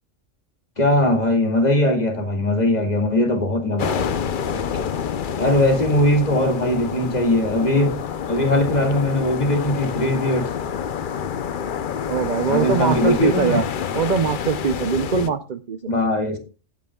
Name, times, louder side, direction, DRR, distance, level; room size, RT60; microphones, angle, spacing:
voice 1, 0.8-4.2 4.5-4.9 5.4-7.9 8.3-10.5 12.5-13.7 15.9-16.4, left 1 dB, 35° left, 2.3 m, -20 dB
sound 1, 3.8-15.3, left 7 dB, 50° left, 0.7 m, -28 dB
voice 2, 12.1-13.6 13.9-15.9, right 6 dB, 50° right, 0.6 m, -22 dB
16.5 x 9.0 x 2.3 m
omnidirectional pair, 1.3 m